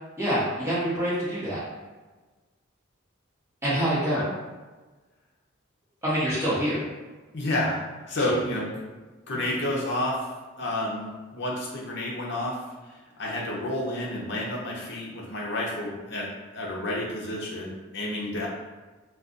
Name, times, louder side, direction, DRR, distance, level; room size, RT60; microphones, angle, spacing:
voice 1, 0.2-1.6 3.6-4.2 6.0-6.8, equal, 15° right, -9 dB, 1.1 m, -26 dB
voice 2, 7.3-7.8 8.1-8.7 9.3-10.2 10.6-12.6 13.2-18.5, left 1 dB, 55° left, -4 dB, 0.7 m, -30 dB
2.4 x 2.4 x 3.7 m, 1.3 s
head